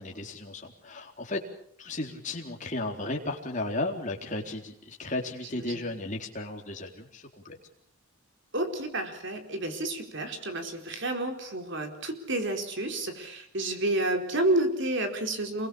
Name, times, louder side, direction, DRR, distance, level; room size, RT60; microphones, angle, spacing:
voice 1, 0.0-1.4 1.8-7.6, left 2 dB, 35° left, 2 dB, 4.1 m, -34 dB
voice 2, 5.4-5.9 8.5-15.7, right 2 dB, 55° right, 5 dB, 4.4 m, -30 dB
28.0 x 22.5 x 7.2 m, 0.68 s
head